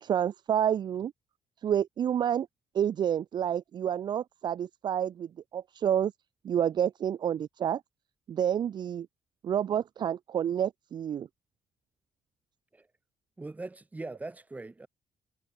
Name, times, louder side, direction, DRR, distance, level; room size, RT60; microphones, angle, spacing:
voice 1, 0.0-1.1 1.6-2.5 2.7-6.1 6.4-7.8 8.3-9.1 9.4-11.3, right 9 dB, 45° right, 0.6 m, -29 dB
voice 2, 13.4-14.9, right 2 dB, 15° right, 7.3 m, -41 dB
cardioid pair, 150°, 10 cm